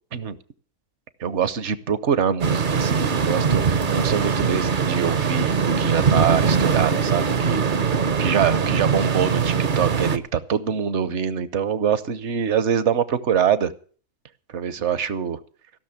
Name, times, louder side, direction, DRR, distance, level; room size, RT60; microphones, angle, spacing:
voice 1, 1.2-7.7 8.2-13.7 14.5-15.4, right 7 dB, 60° right, 15 dB, 1.2 m, -24 dB
sound 1, 2.4-10.2, right 5 dB, 45° right, 0.8 m, -22 dB
16.0 x 6.4 x 8.7 m, 0.43 s
omnidirectional pair, 1.4 m